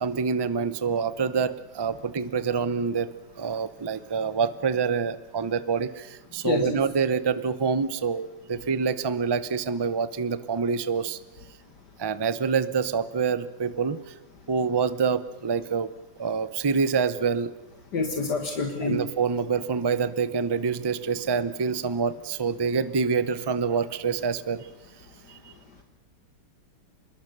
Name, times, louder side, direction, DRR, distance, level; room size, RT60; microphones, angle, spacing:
voice 1, 0.0-3.1 3.4-11.2 12.0-14.1 14.5-15.9 16.2-17.5 18.8-24.7 25.3-25.5, right 5 dB, 35° right, 14 dB, 0.4 m, -26 dB
voice 2, 6.4-6.8 17.9-19.0, left 3 dB, 70° left, 4 dB, 2.2 m, -27 dB
25.5 x 21.0 x 6.8 m, 1.1 s
omnidirectional pair, 1.9 m